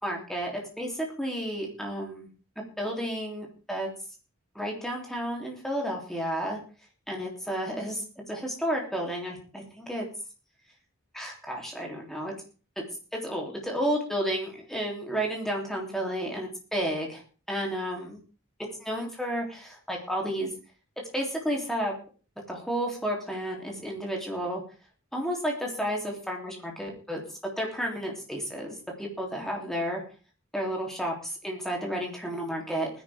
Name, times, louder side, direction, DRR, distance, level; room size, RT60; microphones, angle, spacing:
voice 1, 0.0-2.3 2.6-3.9 4.5-6.6 7.1-10.1 11.1-12.3 12.8-12.9 13.1-17.2 17.5-18.2 18.8-20.5 21.1-21.9 22.5-24.6 25.1-27.2 27.6-30.0 30.5-32.9, equal, ahead, -1 dB, 3.3 m, -32 dB
19.5 x 10.5 x 3.6 m, 0.36 s
head